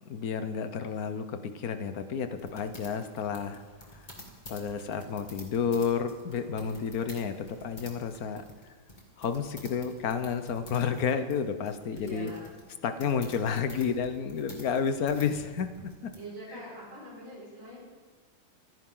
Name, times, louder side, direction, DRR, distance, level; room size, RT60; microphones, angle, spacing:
voice 1, 0.0-3.6 3.9-4.0 4.5-8.4 9.2-12.3 12.8-15.9 16.5-16.6, left 6 dB, 55° left, 9 dB, 1.2 m, -31 dB
sound 1, 2.4-16.2, left 1 dB, 20° left, 2.4 m, -50 dB
voice 2, 11.9-12.5 12.8-13.1 16.1-17.8, equal, 75° right, -6 dB, 6.4 m, -44 dB
24.0 x 10.5 x 3.9 m, 1.4 s
omnidirectional pair, 2.3 m